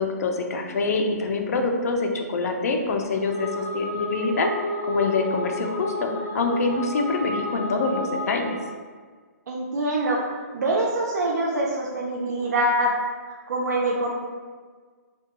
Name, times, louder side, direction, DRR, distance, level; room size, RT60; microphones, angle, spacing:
voice 1, 0.0-4.5 4.9-8.6, left 3 dB, 65° left, 3 dB, 0.4 m, -25 dB
sound 1, 3.0-8.8, left 1 dB, 10° right, 0.9 m, -31 dB
voice 2, 9.5-10.2 10.5-13.0 13.5-14.1, right 1 dB, 85° right, -4 dB, 0.4 m, -24 dB
2.3 x 2.2 x 2.8 m, 1.5 s
hypercardioid pair, 155°, 9 cm